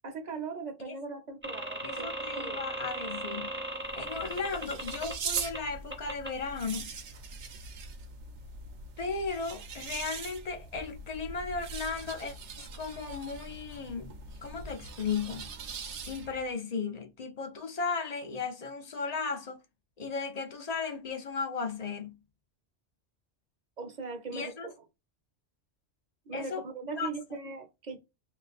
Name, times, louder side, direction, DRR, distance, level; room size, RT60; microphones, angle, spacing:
voice 1, 0.0-2.6 23.8-24.7 26.3-28.0, right 4 dB, 45° right, 0.9 m, -39 dB
sound 1, 1.4-5.6 5.9-6.3, right 1 dB, 10° right, 0.7 m, -37 dB
voice 2, 1.8-3.5 3.9-6.9 9.0-14.1 14.4-15.5 16.0-19.6 20.0-22.2 24.3-24.7 26.3-26.6 27.0-27.1, left 5 dB, 45° left, 0.6 m, -35 dB
sound 2, 3.7-16.5, right 5 dB, 80° right, 1.0 m, -41 dB
3.2 x 2.6 x 4.1 m
omnidirectional pair, 1.2 m